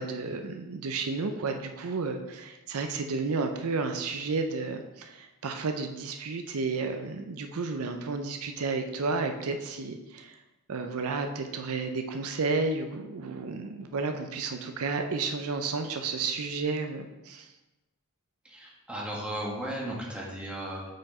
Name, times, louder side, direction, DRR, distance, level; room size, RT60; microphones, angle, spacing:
voice 1, 0.0-10.4 10.7-17.5, right 4 dB, 75° right, 6 dB, 0.5 m, -32 dB
voice 2, 18.5-20.9, right 1 dB, 5° right, -4 dB, 1.3 m, -35 dB
6.2 x 4.6 x 4.3 m, 1.1 s
head